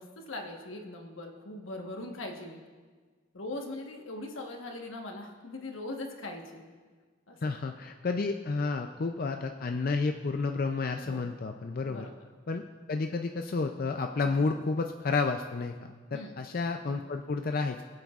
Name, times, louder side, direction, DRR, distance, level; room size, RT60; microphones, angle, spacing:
voice 1, 0.0-2.6 3.3-6.6 7.3-7.5 11.0-11.2 11.9-12.2 14.2-14.6 16.1-16.4, left 2 dB, 85° left, 2 dB, 1.3 m, -41 dB
voice 2, 7.4-12.0 12.5-17.8, left 4 dB, 45° left, 5 dB, 0.4 m, -31 dB
23.0 x 7.9 x 2.4 m, 1.5 s
head